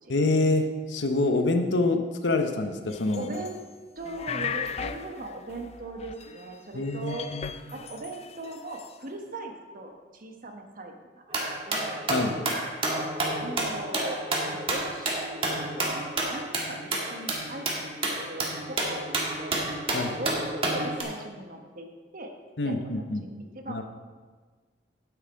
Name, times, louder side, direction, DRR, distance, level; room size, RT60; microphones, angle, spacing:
voice 1, 0.1-3.3 6.7-7.5 12.1-12.4 19.9-20.2 22.6-23.2 23.7-23.8, left 2 dB, 90° left, 6 dB, 1.0 m, -26 dB
sound 1, 2.9-3.7 4.0-6.6 6.8-8.9, left 6 dB, 35° left, 0.4 m, -38 dB
voice 2, 3.1-3.6 4.0-7.3 7.7-11.2 11.7-12.0 13.4-19.8 20.2-21.9 22.1-22.3 22.6-22.8 23.5-23.8, right 2 dB, 50° right, 4 dB, 1.2 m, -39 dB
sound 2, 11.3-21.0, right 2 dB, 30° right, 1.8 m, -30 dB
9.2 x 8.1 x 5.3 m, 1.4 s
head